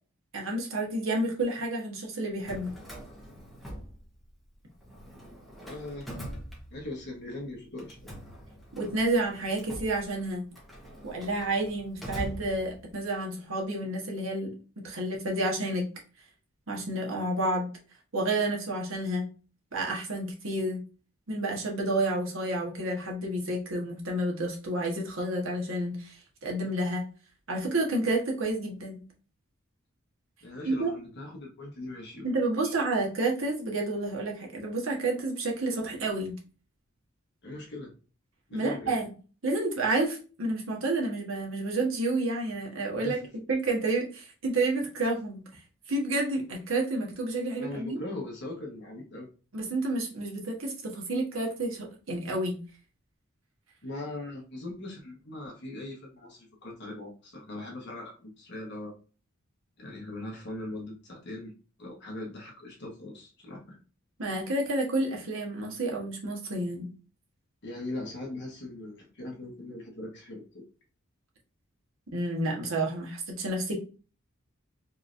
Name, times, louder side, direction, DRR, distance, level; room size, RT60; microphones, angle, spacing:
voice 1, 0.3-2.7 8.8-10.4 11.0-14.5 14.8-15.8 16.7-17.7 18.1-19.3 19.7-20.8 21.3-26.2 26.4-27.0 27.5-29.0 30.6-30.9 32.2-36.3 38.5-39.0 39.4-43.2 43.5-45.4 45.9-48.0 49.5-52.6 64.2-66.9 72.1-73.8, right 2 dB, 70° right, 0 dB, 1.3 m, -30 dB
Drawer open or close, 2.3-4.5 4.8-7.2 7.8-13.0, equal, ahead, 1.1 m, -43 dB
voice 2, 5.6-6.1 6.7-8.1 30.4-32.3 37.4-37.9 38.5-39.0 43.0-43.2 47.6-49.3 53.8-58.9 59.8-61.5 61.8-63.8 67.6-70.6, left 2 dB, 55° left, -1 dB, 1.3 m, -40 dB
4.6 x 3.3 x 2.6 m, 0.36 s
head